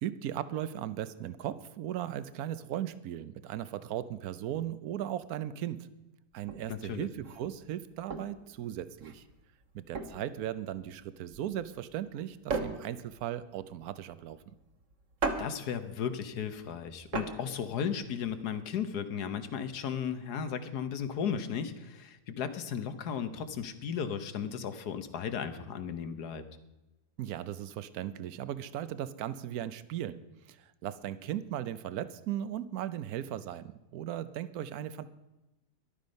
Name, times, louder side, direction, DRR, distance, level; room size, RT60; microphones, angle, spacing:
voice 1, 0.0-5.9 6.3-9.2 9.7-14.4 27.2-30.2 30.5-35.1, right 11 dB, 65° right, 14 dB, 1.1 m, -37 dB
sound 1, 6.5-18.6, right 4 dB, 50° right, 1.5 m, -39 dB
voice 2, 6.7-7.1 15.4-26.4, left 7 dB, 70° left, 10 dB, 1.6 m, -35 dB
14.0 x 11.5 x 5.3 m, 1.0 s
omnidirectional pair, 1.8 m